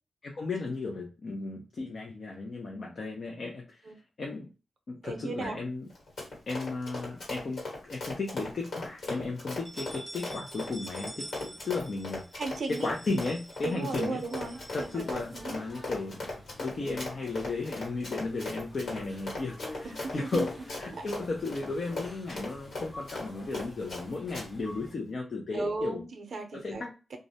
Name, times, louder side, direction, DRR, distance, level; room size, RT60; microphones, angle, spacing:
voice 1, 0.2-3.9 4.2-4.5 4.9-5.9 6.5-11.3 11.6-12.2 12.7-14.2 14.7-16.3 16.6-26.0 26.5-26.9, left 3 dB, 55° left, 0 dB, 0.5 m, -35 dB
voice 2, 5.0-5.6 12.4-12.9 13.6-15.6 16.8-17.0 19.8-20.5 20.9-21.1 25.5-26.9 27.1-27.2, right 3 dB, 65° right, 5 dB, 0.5 m, -36 dB
Run, 5.9-24.0 24.3-24.5, left 2 dB, 80° left, 1.4 m, -38 dB
sound 1, 7.0-7.9 8.3-8.4 8.8-8.9 9.4-15.7, right 1 dB, 15° right, 0.4 m, -48 dB
sound 2, 14.5-24.9, left 1 dB, 15° left, 0.7 m, -49 dB
2.3 x 2.0 x 2.6 m, 0.32 s
wide cardioid pair, 105°, 0 cm